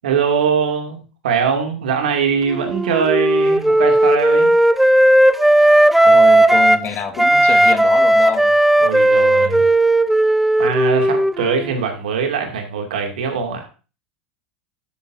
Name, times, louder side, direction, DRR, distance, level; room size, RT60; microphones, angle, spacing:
voice 1, 0.0-4.5 8.8-9.6 10.6-13.7, right 6 dB, 70° right, 4 dB, 2.4 m, -21 dB
Wind instrument woodwind instrument, 2.5-6.9 7.2-11.7, right 1 dB, 5° right, 0.7 m, -14 dB
voice 2, 6.0-8.5 9.4-9.5, left 7 dB, 40° left, 7 dB, 1.7 m, -27 dB
11.5 x 8.8 x 2.6 m, 0.35 s
hypercardioid pair, 85°, 5 cm